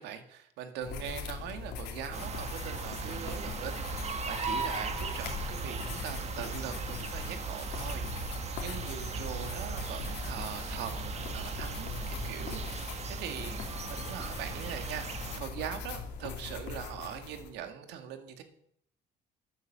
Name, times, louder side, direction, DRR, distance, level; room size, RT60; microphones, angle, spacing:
voice 1, 0.0-13.6 13.9-15.1 15.4-18.4, right 9 dB, 90° right, 7 dB, 2.0 m, -42 dB
sound 1, 0.8-17.5, left 5 dB, 90° left, 2.7 m, -41 dB
sound 2, 1.0-12.8 13.5-16.1, equal, 25° right, 2.4 m, -60 dB
sound 3, 2.1-15.4, right 5 dB, 40° right, 1.8 m, -38 dB
12.5 x 9.4 x 7.4 m, 0.69 s
cardioid pair, 110°, 17 cm